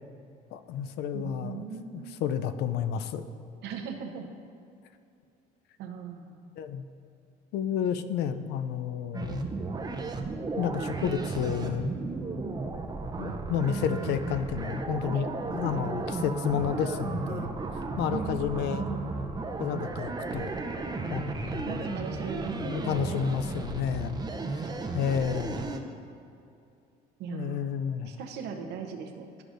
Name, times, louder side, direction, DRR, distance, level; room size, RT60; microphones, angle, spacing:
voice 1, 0.5-1.7 1.9-3.2 6.6-6.9 7.5-9.5 10.6-11.9 13.2-15.3 15.5-17.6 18.0-18.9 19.6-20.5 21.1-21.9 22.5-24.2 24.9-25.7 27.3-28.1, left 8 dB, 80° left, 11 dB, 0.4 m, -31 dB
voice 2, 1.1-2.2 3.6-4.3 5.8-6.5 18.1-19.3 21.4-23.4 24.4-25.8 27.2-27.7 28.0-29.4, right 6 dB, 85° right, 4 dB, 0.8 m, -39 dB
sound 1, 9.1-25.8, right 3 dB, 25° right, 0.6 m, -34 dB
12.0 x 4.9 x 2.6 m, 2.5 s
cardioid pair, 110°, 17 cm